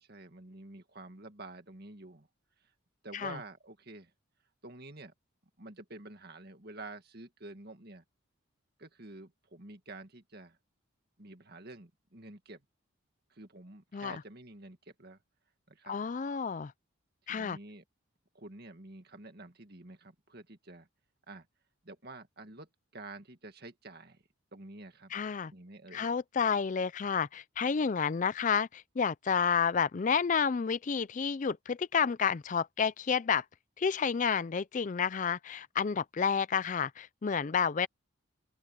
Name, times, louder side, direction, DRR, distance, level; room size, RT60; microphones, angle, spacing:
voice 1, 0.0-2.3 3.0-4.1 4.6-5.1 5.6-8.0 8.8-10.6 11.2-12.6 13.3-15.2 15.7-16.0 17.3-17.8 18.3-20.9 21.3-21.5 21.8-24.2 24.5-25.1 25.5-26.1, right 2 dB, 50° right, 2.1 m, -49 dB
voice 2, 15.8-16.7 17.3-17.6 25.1-25.5 25.9-33.4 33.8-37.9, left 6 dB, 35° left, 0.4 m, -30 dB
open air
head